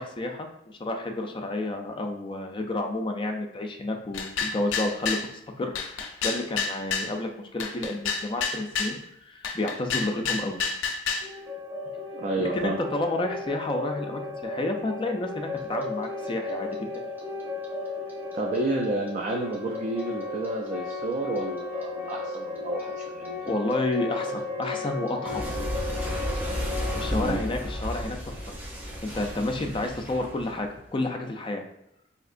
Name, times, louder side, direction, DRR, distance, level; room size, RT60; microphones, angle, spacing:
voice 1, 0.0-9.0 9.3-10.6 12.4-16.7 23.5-25.4 26.6-28.4 29.0-31.6, left 2 dB, 25° left, 3 dB, 0.4 m, -30 dB
sound 1, 4.1-5.3 5.8-7.1 7.6-9.0 9.4-11.3, left 5 dB, 90° left, 0.4 m, -29 dB
sound 2, 11.2-29.0, left 3 dB, 70° right, 1.3 m, -35 dB
voice 2, 12.1-12.8 18.3-23.5 27.1-27.4, right 2 dB, 40° right, 0 dB, 0.4 m, -30 dB
Clock, 15.6-18.6 18.8-21.8 22.1-31.0, equal, 10° right, 0.7 m, -34 dB
3.4 x 2.8 x 2.5 m, 0.81 s
head